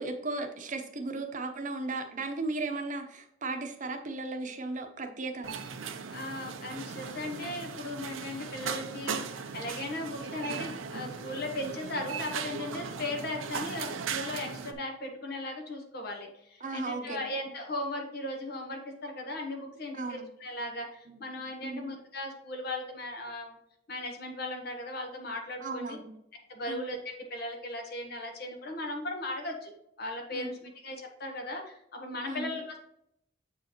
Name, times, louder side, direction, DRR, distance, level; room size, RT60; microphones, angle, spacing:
voice 1, 0.0-5.6 16.6-17.3 19.9-20.3 21.1-21.2 21.6-21.9 25.6-26.1 26.7-26.8 30.3-30.5 32.2-32.5, right 3 dB, 40° right, 5 dB, 0.9 m, -36 dB
sound 1, 5.4-14.7, right 5 dB, 90° right, 0.7 m, -38 dB
voice 2, 6.1-23.6 23.9-26.0 26.5-29.7 30.0-32.8, left 1 dB, 50° left, 3 dB, 1.3 m, -37 dB
7.6 x 4.7 x 3.0 m, 0.77 s
head